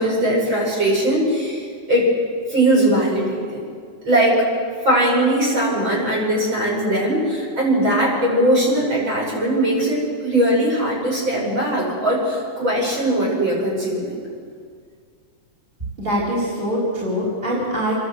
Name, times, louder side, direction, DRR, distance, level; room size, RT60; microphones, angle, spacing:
voice 1, 0.0-2.1 2.5-3.6 4.0-4.4 4.8-14.1, right 1 dB, 35° right, -4 dB, 6.5 m, -20 dB
voice 2, 16.0-17.9, equal, 15° right, -7 dB, 4.3 m, -23 dB
28.5 x 11.5 x 8.0 m, 2.1 s
omnidirectional pair, 3.5 m